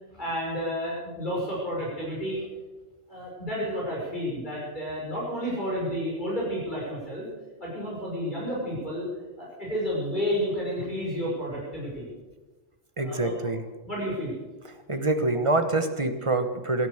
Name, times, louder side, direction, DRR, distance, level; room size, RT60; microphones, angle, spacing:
voice 1, 0.1-2.4 3.1-7.3 7.6-9.1 9.4-12.1 13.0-13.3 13.8-14.3, equal, 35° left, -5 dB, 5.9 m, -31 dB
voice 2, 13.0-13.6 14.9-16.9, right 2 dB, 25° right, 8 dB, 1.2 m, -25 dB
17.0 x 13.0 x 6.5 m, 1.2 s
omnidirectional pair, 1.3 m